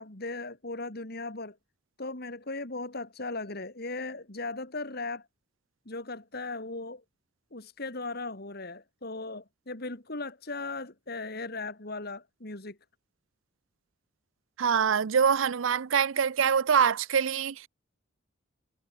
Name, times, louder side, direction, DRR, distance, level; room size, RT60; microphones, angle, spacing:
voice 1, 0.0-1.6 2.0-5.3 5.9-7.0 7.5-12.8, left 3 dB, 50° left, 2.6 m, -37 dB
voice 2, 14.6-17.7, right 7 dB, 70° right, 0.5 m, -24 dB
head